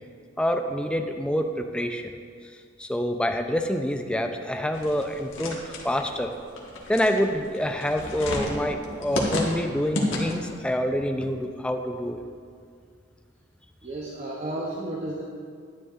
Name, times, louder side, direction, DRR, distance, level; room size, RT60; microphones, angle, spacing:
voice 1, 0.4-2.2 2.8-6.3 6.9-12.2, equal, 5° left, 5 dB, 0.4 m, -27 dB
sound 1, 4.7-10.6, left 1 dB, 85° left, 1.4 m, -32 dB
voice 2, 13.8-15.2, right 1 dB, 35° right, -3 dB, 0.7 m, -32 dB
10.5 x 9.8 x 2.5 m, 2.2 s
head